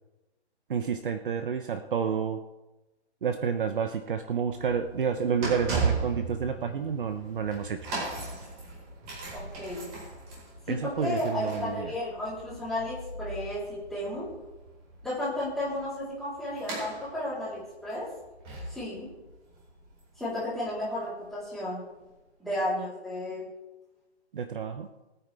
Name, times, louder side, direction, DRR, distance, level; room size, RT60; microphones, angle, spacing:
voice 1, 0.7-2.4 3.2-7.8 10.7-11.9 24.3-24.9, right 7 dB, 50° right, 8 dB, 0.8 m, -30 dB
sound 1, 4.4-21.3 22.0-22.1, right 4 dB, 20° right, 4.5 m, -38 dB
voice 2, 9.3-9.9 10.7-14.3 15.0-18.1 18.7-19.1 20.2-21.8 22.4-23.4, left 1 dB, ahead, -10 dB, 3.6 m, -33 dB
21.5 x 9.3 x 3.4 m, 1.1 s
hypercardioid pair, 160°, 34 cm